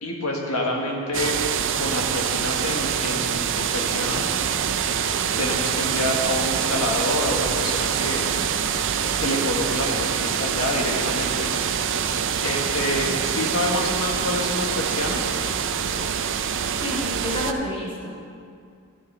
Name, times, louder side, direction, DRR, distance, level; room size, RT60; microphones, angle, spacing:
voice 1, 0.0-1.4 1.8-4.3 5.4-8.2 9.2-11.5 12.4-15.3, left 1 dB, 85° left, 0 dB, 1.5 m, -27 dB
sound 1, 1.1-17.5, right 7 dB, 60° right, 0.5 m, -25 dB
voice 2, 13.0-13.4 16.8-18.3, left 1 dB, 25° left, -3 dB, 1.7 m, -30 dB
14.0 x 11.0 x 3.4 m, 2.3 s
head